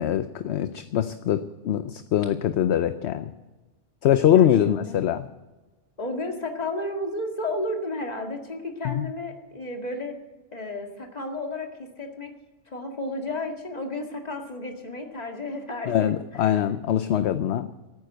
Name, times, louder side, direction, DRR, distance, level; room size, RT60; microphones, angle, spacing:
voice 1, 0.0-3.3 4.0-5.3 8.8-9.1 15.9-17.7, left 10 dB, 65° left, 11 dB, 0.9 m, -23 dB
voice 2, 4.3-5.0 6.0-10.2 10.5-12.3 12.7-16.2, left 2 dB, 35° left, 2 dB, 2.1 m, -32 dB
16.0 x 9.4 x 7.9 m, 1.2 s
omnidirectional pair, 1.2 m